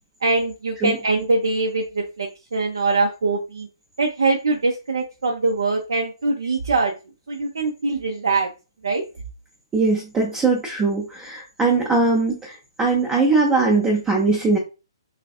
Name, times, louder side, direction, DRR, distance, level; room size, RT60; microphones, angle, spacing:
voice 1, 0.2-3.7 4.0-6.9 7.3-8.5 8.8-9.0, right 3 dB, 65° right, 0 dB, 0.5 m, -22 dB
voice 2, 9.7-14.6, right 3 dB, 15° right, -1 dB, 0.5 m, -20 dB
3.2 x 2.4 x 2.4 m, 0.30 s
figure-of-eight pair, 130°, 2 cm